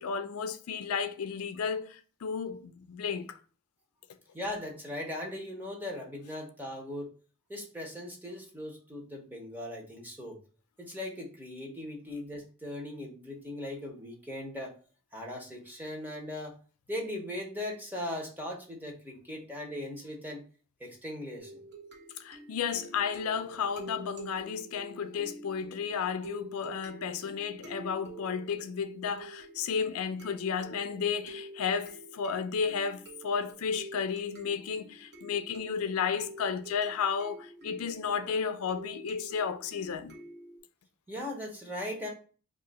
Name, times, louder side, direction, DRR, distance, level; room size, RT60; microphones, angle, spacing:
voice 1, 0.0-3.4 22.2-40.2, left 6 dB, 75° left, 0.4 m, -33 dB
voice 2, 4.3-7.1 7.5-10.4 10.8-14.7 15.1-16.5 16.9-20.4 20.8-21.6 41.1-42.1, left 1 dB, 10° right, 0.7 m, -39 dB
sound 1, 21.4-40.6, right 2 dB, 50° right, 1.0 m, -48 dB
2.8 x 2.4 x 3.9 m
head